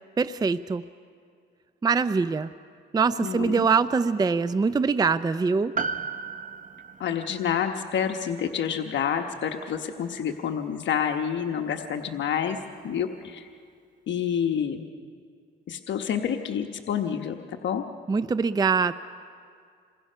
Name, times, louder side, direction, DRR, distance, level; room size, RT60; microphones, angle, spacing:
voice 1, 0.2-0.8 1.8-2.5 2.9-5.8 18.1-18.9, right 5 dB, 20° right, 14 dB, 0.5 m, -23 dB
voice 2, 3.2-3.7 7.0-12.6 12.8-13.5 14.1-14.9 15.7-17.8, left 8 dB, 65° left, 5 dB, 1.1 m, -28 dB
Piano, 5.8-10.4 10.6-10.7, right 4 dB, 40° right, 1.1 m, -37 dB
27.5 x 21.0 x 5.6 m, 2.2 s
cardioid pair, 90°, 20 cm